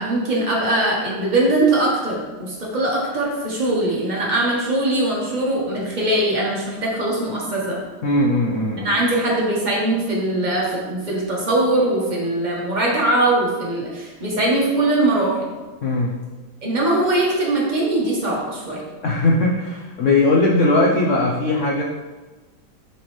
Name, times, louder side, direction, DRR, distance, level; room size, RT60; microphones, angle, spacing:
voice 1, 0.0-7.8 8.8-15.4 16.6-18.8, right 1 dB, 25° right, -4 dB, 1.2 m, -21 dB
voice 2, 8.0-8.9 15.8-16.1 19.0-21.8, left 2 dB, 85° left, -3 dB, 0.6 m, -19 dB
7.5 x 4.5 x 3.2 m, 1.2 s
omnidirectional pair, 2.3 m